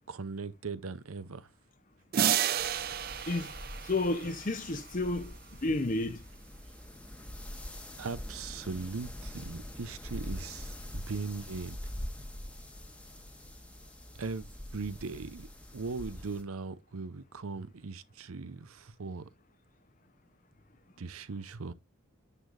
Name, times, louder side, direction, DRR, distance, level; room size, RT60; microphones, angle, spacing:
voice 1, 0.1-1.5 8.0-11.8 14.2-14.4 14.7-19.3 21.0-21.7, right 4 dB, 75° right, 0.7 m, -39 dB
sound 1, 2.1-4.9, right 9 dB, 45° right, 0.4 m, -31 dB
sound 2, 2.6-16.4, left 1 dB, 5° left, 1.0 m, -44 dB
voice 2, 3.8-5.3 5.6-6.2, left 2 dB, 35° left, 0.7 m, -31 dB
9.9 x 6.5 x 2.5 m
head